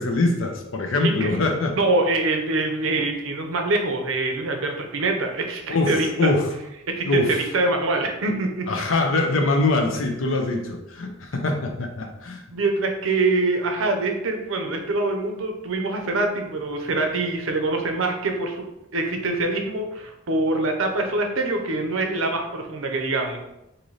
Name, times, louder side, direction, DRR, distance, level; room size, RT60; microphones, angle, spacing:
voice 1, 0.0-1.8 5.7-6.5 7.1-7.4 8.7-12.4, left 2 dB, 70° left, 3 dB, 0.6 m, -23 dB
voice 2, 1.8-6.3 6.9-8.7 12.5-18.6 18.9-23.4, right 2 dB, 70° right, 4 dB, 0.6 m, -24 dB
3.9 x 2.7 x 3.2 m, 0.88 s
head